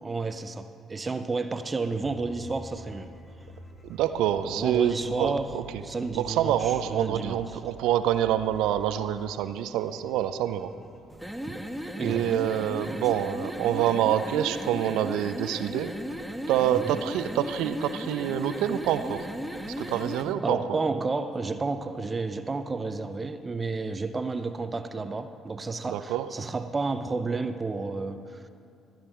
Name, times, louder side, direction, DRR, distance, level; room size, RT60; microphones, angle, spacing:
voice 1, 0.0-3.1 4.5-5.5 5.8-7.5 11.5-11.6 12.0-12.4 12.8-13.1 16.7-17.0 20.2-28.5, right 3 dB, 30° right, 10 dB, 0.6 m, -31 dB
sound 1, 1.9-11.0, right 3 dB, 40° left, 1.9 m, -47 dB
voice 2, 3.8-5.8 6.1-10.7 12.0-15.9 16.5-19.3 19.7-20.8 25.9-26.3, right 11 dB, 75° right, 12 dB, 0.5 m, -27 dB
sound 2, 11.1-20.3, equal, ahead, 0.8 m, -36 dB
14.0 x 9.0 x 4.4 m, 2.5 s
hypercardioid pair, 55°, 0 cm